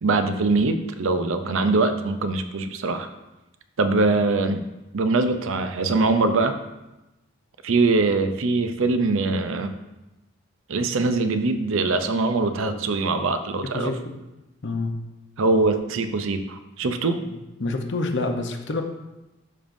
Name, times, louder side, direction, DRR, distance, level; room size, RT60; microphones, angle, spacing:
voice 1, 0.0-3.1 3.8-4.6 4.9-6.6 7.6-9.8 10.7-13.9 15.4-17.2, right 3 dB, 70° right, 9 dB, 0.5 m, -22 dB
voice 2, 13.7-14.1 14.6-14.9 17.3-18.8, left 2 dB, 55° left, 5 dB, 0.7 m, -27 dB
12.0 x 5.2 x 2.6 m, 1.0 s
head